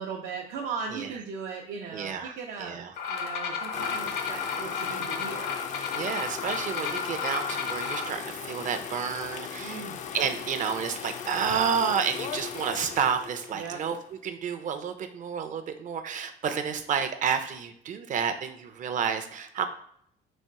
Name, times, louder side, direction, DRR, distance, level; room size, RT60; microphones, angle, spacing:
voice 1, 0.0-2.8 3.1-5.6 9.6-10.0 13.5-13.8, right 5 dB, 85° right, -2 dB, 0.8 m, -38 dB
voice 2, 1.9-2.9 5.9-9.8 10.1-14.0 14.2-19.7, right 7 dB, 50° right, 7 dB, 0.6 m, -30 dB
sound 1, 3.0-8.1, left 6 dB, 75° left, 0.8 m, -32 dB
sound 2, 3.7-14.2, left 7 dB, 45° left, 0.4 m, -38 dB
4.3 x 2.5 x 4.7 m, 0.69 s
cardioid pair, 110°, 17 cm